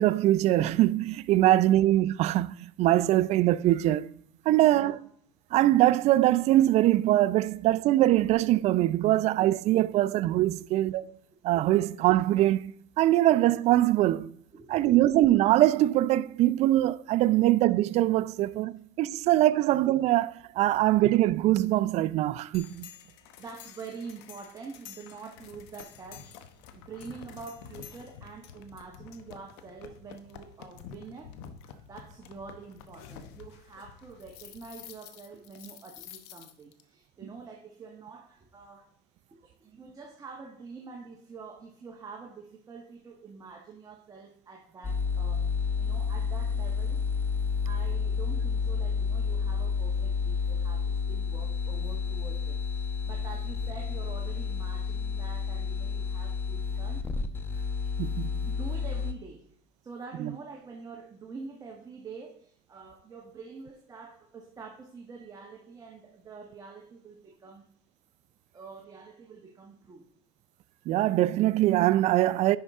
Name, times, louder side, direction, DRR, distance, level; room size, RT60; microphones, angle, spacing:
voice 1, 0.0-4.1 4.5-5.0 5.5-11.0 11.4-14.3 14.7-22.9 58.0-58.3 60.2-60.3 70.9-72.6, right 14 dB, 55° right, 0.5 m, -23 dB
voice 2, 1.4-1.8 4.5-5.0 10.6-10.7 11.3-11.4 14.5-15.0 20.7-20.8 23.4-31.4 31.9-38.9 39.3-45.5 45.8-47.1 47.6-57.1 58.5-59.5 59.8-67.7 68.5-70.1, right 4 dB, 25° right, 1.3 m, -46 dB
sound 1, 22.5-36.8, left 8 dB, 85° left, 1.0 m, -49 dB
sound 2, 44.8-59.1, left 5 dB, 15° left, 0.9 m, -30 dB
10.0 x 5.6 x 3.6 m
supercardioid pair, 110°, 13 cm